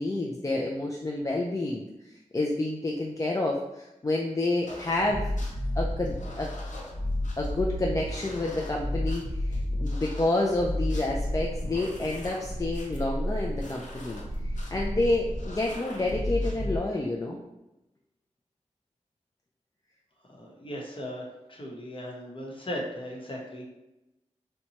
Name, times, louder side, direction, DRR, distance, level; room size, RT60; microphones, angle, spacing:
voice 1, 0.0-1.9 2.3-5.3 5.7-6.5 7.4-17.4, left 2 dB, 25° left, -1 dB, 0.4 m, -29 dB
sound 1, 4.7-16.8, left 1 dB, 85° left, 0.7 m, -32 dB
voice 2, 20.3-23.7, equal, 40° left, -2 dB, 0.9 m, -37 dB
4.1 x 2.2 x 2.8 m, 0.94 s
wide cardioid pair, 70°, 13 cm